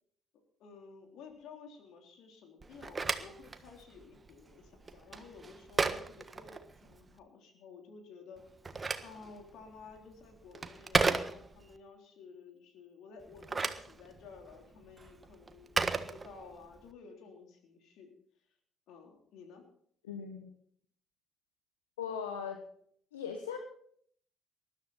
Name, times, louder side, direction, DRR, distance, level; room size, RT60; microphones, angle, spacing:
voice 1, 0.6-8.4 9.0-18.1 18.9-19.6, left 5 dB, 65° left, 3 dB, 3.6 m, -53 dB
Telephone, 2.6-7.1 8.4-11.8 13.2-16.8, right 4 dB, 30° right, 1.4 m, -36 dB
voice 2, 20.0-20.5 22.0-22.6 23.1-23.6, left 7 dB, 85° left, 5 dB, 1.2 m, -38 dB
20.0 x 13.0 x 4.2 m, 0.63 s
hypercardioid pair, 50°, 0 cm